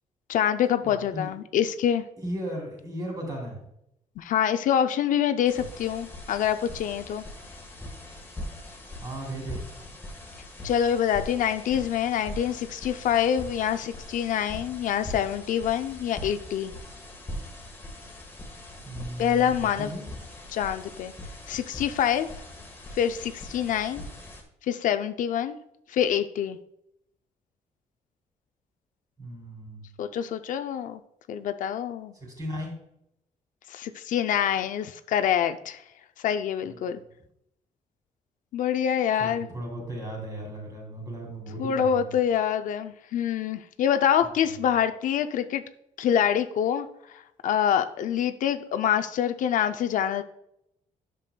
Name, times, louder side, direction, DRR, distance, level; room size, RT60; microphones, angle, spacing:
voice 1, 0.3-2.0 4.2-7.2 10.6-16.7 19.2-19.9 20.5-21.1 21.5-22.3 23.0-24.0 24.7-25.6 25.9-26.6 30.0-31.0 31.3-32.1 33.7-35.8 36.2-37.0 38.5-39.5 41.6-45.6 46.0-50.2, left 9 dB, 70° left, 9 dB, 0.5 m, -26 dB
voice 2, 0.8-1.3 2.2-3.6 8.9-9.6 18.8-20.0 29.2-29.8 32.1-32.7 36.6-37.0 39.2-42.1 44.5-44.6, right 1 dB, 25° right, 0 dB, 2.8 m, -36 dB
sound 1, 5.4-24.4, left 1 dB, 15° left, 1.4 m, -41 dB
10.5 x 6.8 x 2.2 m, 0.78 s
cardioid pair, 160°, 14 cm